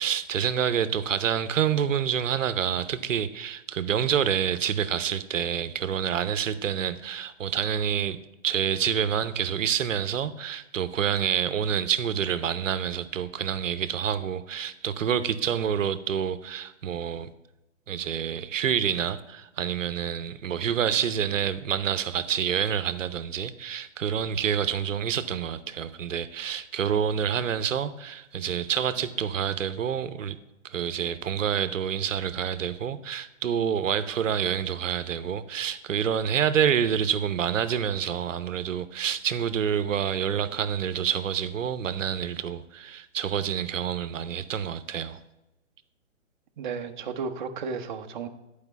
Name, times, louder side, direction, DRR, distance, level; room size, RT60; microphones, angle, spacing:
voice 1, 0.0-8.2 8.4-17.3 17.9-30.4 30.6-45.2, right 8 dB, 75° right, 13 dB, 0.8 m, -27 dB
voice 2, 46.6-48.3, right 5 dB, 40° right, 6 dB, 0.8 m, -33 dB
10.5 x 5.0 x 7.0 m, 0.95 s
hypercardioid pair, 155°, 38 cm